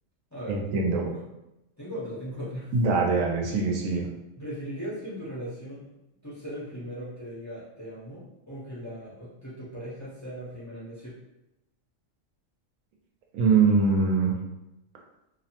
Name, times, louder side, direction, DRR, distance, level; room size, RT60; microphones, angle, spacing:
voice 1, 0.5-1.0 2.7-4.1 13.3-14.3, right 4 dB, 90° right, 0 dB, 1.0 m, -23 dB
voice 2, 1.8-2.7 4.4-5.9 6.2-11.1, equal, 20° left, -8 dB, 0.4 m, -38 dB
2.6 x 2.1 x 2.8 m, 0.91 s
omnidirectional pair, 1.3 m